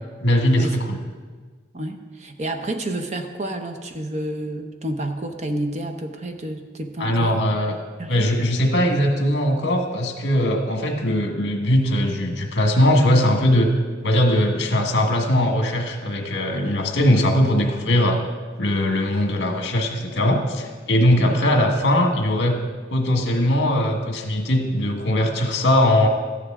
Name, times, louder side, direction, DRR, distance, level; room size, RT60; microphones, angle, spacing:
voice 1, 0.2-1.0 7.0-7.8 8.1-18.2 18.6-22.6 22.9-26.1, left 1 dB, 65° left, 3 dB, 1.6 m, -20 dB
voice 2, 1.7-7.4 8.0-8.3 21.2-21.4, right 1 dB, 35° right, 6 dB, 0.9 m, -30 dB
14.0 x 11.0 x 3.7 m, 1.4 s
head